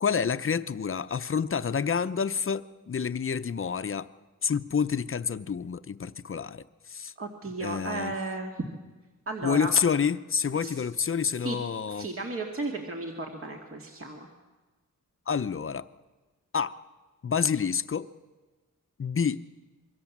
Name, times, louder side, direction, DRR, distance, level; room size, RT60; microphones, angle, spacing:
voice 1, 0.0-4.1 4.4-7.1 7.6-8.1 9.4-12.1 15.3-15.9 16.5-16.8 17.2-18.1 19.0-19.4, left 6 dB, 40° left, 12 dB, 0.8 m, -28 dB
voice 2, 7.2-8.7 9.3-9.7 10.6-10.7 11.4-11.6 11.9-14.3, right 2 dB, 45° right, 1 dB, 2.3 m, -34 dB
26.0 x 23.5 x 7.4 m, 1.3 s
wide cardioid pair, 145°, 32 cm